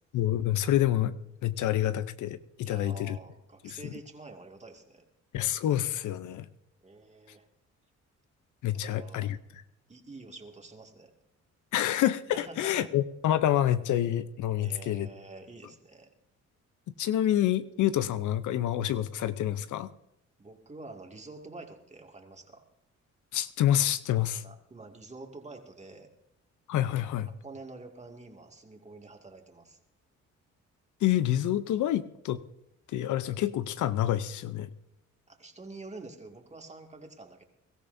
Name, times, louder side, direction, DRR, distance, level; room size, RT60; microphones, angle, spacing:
voice 1, 0.1-1.1 1.4-3.2 3.6-3.8 5.3-6.4 8.6-9.4 11.7-15.1 17.0-19.9 23.3-24.4 26.7-27.3 31.0-32.4 32.9-34.7, left 12 dB, 75° left, 13 dB, 0.7 m, -27 dB
voice 2, 2.6-5.0 6.8-7.5 8.7-9.3 9.9-11.1 12.3-12.9 14.6-16.1 20.4-22.6 24.4-26.1 27.3-29.8 35.3-37.4, right 3 dB, 20° right, 3 dB, 2.2 m, -47 dB
22.5 x 14.0 x 2.7 m, 0.84 s
cardioid pair, 90°, 30 cm